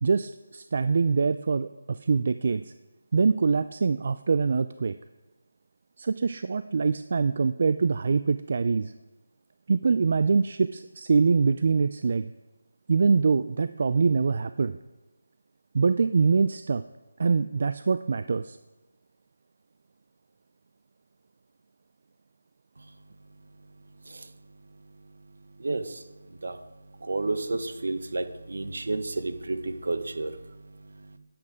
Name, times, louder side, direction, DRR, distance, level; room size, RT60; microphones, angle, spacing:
voice 1, 0.0-2.7 3.1-5.0 6.0-8.9 9.7-12.3 12.9-14.8 15.7-16.8 17.2-18.6, right 4 dB, 50° right, 13 dB, 0.3 m, -24 dB
voice 2, 22.8-31.2, right 2 dB, 70° right, 9 dB, 1.0 m, -34 dB
10.5 x 8.5 x 4.9 m, 1.1 s
figure-of-eight pair, 165°, 0 cm